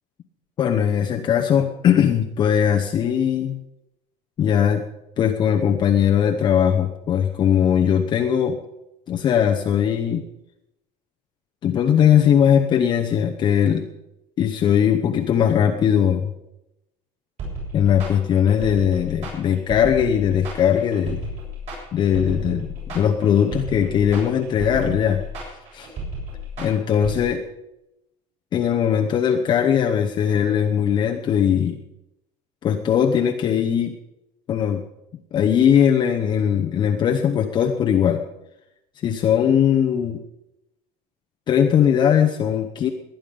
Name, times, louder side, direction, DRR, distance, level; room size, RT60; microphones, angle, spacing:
voice 1, 0.6-3.6 4.4-4.8 5.2-8.6 9.1-10.2 11.6-13.9 14.4-16.3 17.7-21.2 21.9-25.9 26.6-27.4 28.5-31.8 32.6-33.9 34.5-34.8 35.3-38.2 39.0-40.2 41.5-42.9, left 8 dB, 25° left, 3 dB, 0.8 m, -19 dB
sound 1, 17.4-27.2, equal, 40° right, 7.7 m, -33 dB
19.5 x 10.5 x 5.4 m, 0.87 s
cardioid pair, 175°, 17 cm